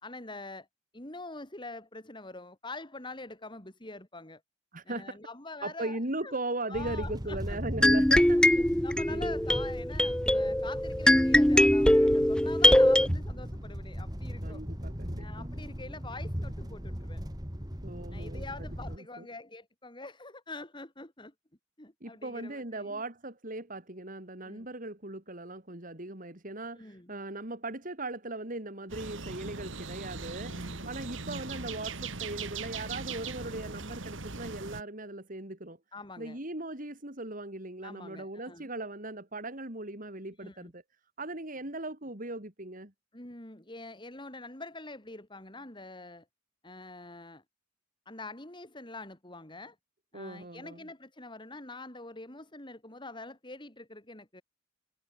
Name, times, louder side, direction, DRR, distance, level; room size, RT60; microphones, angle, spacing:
voice 1, 0.0-0.7 0.9-4.4 4.8-6.4 6.7-7.6 8.4-14.6 15.2-17.2 18.1-21.3 21.8-23.0 24.4-24.7 26.8-27.1 30.5-30.9 35.9-36.4 37.8-38.7 40.4-40.7 43.1-46.3 46.6-47.4 48.1-49.8 50.1-54.4, left 2 dB, 25° left, 3.9 m, -45 dB
voice 2, 4.7-5.2 5.6-8.6 9.1-9.3 14.4-15.5 17.8-19.3 22.0-30.5 30.9-35.8 36.2-40.8 41.2-42.9 50.1-50.8, right 2 dB, 45° right, 4.2 m, -39 dB
sound 1, 6.7-19.0, equal, 20° right, 5.6 m, -38 dB
sound 2, 7.8-13.1, left 1 dB, 5° left, 0.5 m, -22 dB
sound 3, 28.9-34.8, right 4 dB, 80° right, 2.6 m, -39 dB
head